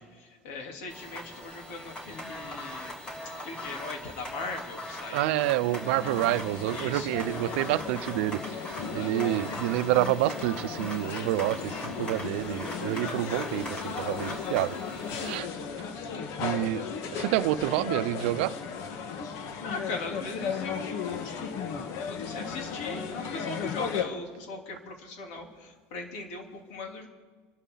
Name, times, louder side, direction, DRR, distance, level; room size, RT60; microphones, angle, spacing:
voice 1, 0.0-2.9 3.4-5.4 6.7-7.2 19.6-27.1, left 3 dB, 75° left, 1 dB, 3.5 m, -39 dB
sound 1, 0.9-15.4, equal, 20° left, 3.2 m, -41 dB
voice 2, 5.1-8.6 8.9-14.8 15.2-15.5 16.4-16.8 17.1-18.6, right 15 dB, 85° right, 14 dB, 0.6 m, -28 dB
sound 2, 5.4-24.0, left 6 dB, 60° left, 1.5 m, -36 dB
28.5 x 12.5 x 4.0 m, 1.4 s
supercardioid pair, 135°, 6 cm